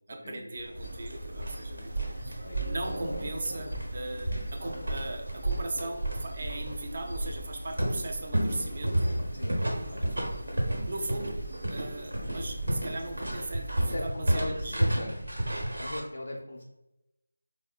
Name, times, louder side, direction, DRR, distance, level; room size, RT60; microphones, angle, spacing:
voice 1, 0.1-8.9 9.9-10.0 10.8-11.4 11.7-14.8, right 2 dB, 40° right, 3 dB, 0.4 m, -38 dB
sound 1, 0.6-16.0, right 1 dB, 80° right, 0.9 m, -32 dB
sound 2, 0.7-13.9, equal, 55° right, 0.8 m, -43 dB
voice 2, 2.4-2.7 9.3-9.6 9.9-10.3 13.9-15.4 15.7-16.6, left 1 dB, 60° left, -1 dB, 0.4 m, -38 dB
3.6 x 2.0 x 2.3 m, 0.91 s
figure-of-eight pair, 170°, 0 cm